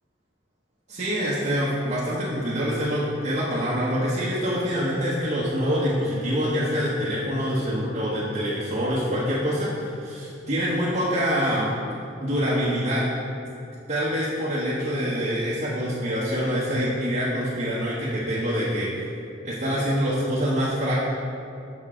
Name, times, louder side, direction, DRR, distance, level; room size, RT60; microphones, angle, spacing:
voice 1, 0.9-11.7 12.2-13.0 13.9-18.9 19.4-20.9, equal, 40° right, -9 dB, 0.9 m, -25 dB
6.8 x 6.2 x 3.7 m, 2.7 s
head